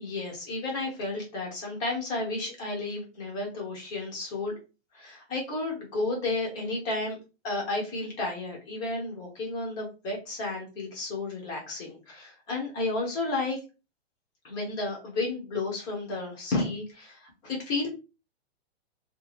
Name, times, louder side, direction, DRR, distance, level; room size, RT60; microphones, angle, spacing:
voice 1, 0.0-4.5 4.9-7.2 7.4-13.6 14.4-17.9, left 2 dB, 15° left, -1 dB, 0.6 m, -32 dB
2.5 x 2.4 x 3.2 m, 0.30 s
hypercardioid pair, 165°, 32 cm